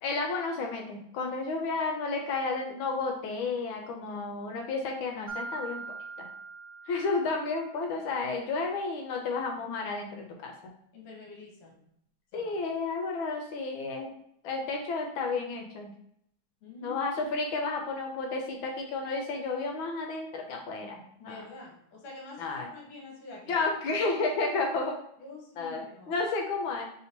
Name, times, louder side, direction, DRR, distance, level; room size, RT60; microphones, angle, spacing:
voice 1, 0.0-5.8 6.2-6.3 6.9-10.5 12.3-14.2 14.4-15.9 16.8-21.4 22.4-22.7 23.5-25.0 25.6-26.8, left 3 dB, 75° left, 2 dB, 1.3 m, -32 dB
Mallet percussion, 5.3-7.8, right 4 dB, 55° right, 0.9 m, -42 dB
voice 2, 10.9-11.8 12.3-12.6 16.6-17.1 21.3-23.7 25.2-26.2, left 2 dB, 55° left, -2 dB, 1.5 m, -47 dB
3.5 x 2.8 x 4.2 m, 0.73 s
omnidirectional pair, 2.4 m